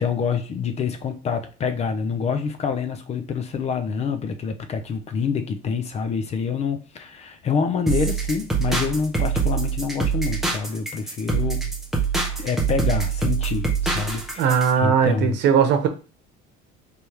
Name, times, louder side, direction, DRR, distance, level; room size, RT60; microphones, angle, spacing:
voice 1, 0.0-11.7 12.4-15.4, left 6 dB, 30° left, 0.6 m, -27 dB
sound 1, 7.9-14.7, right 5 dB, ahead, 1.1 m, -24 dB
voice 2, 14.4-15.9, right 7 dB, 55° right, 1.1 m, -19 dB
3.4 x 3.4 x 4.5 m
cardioid pair, 150°, 21 cm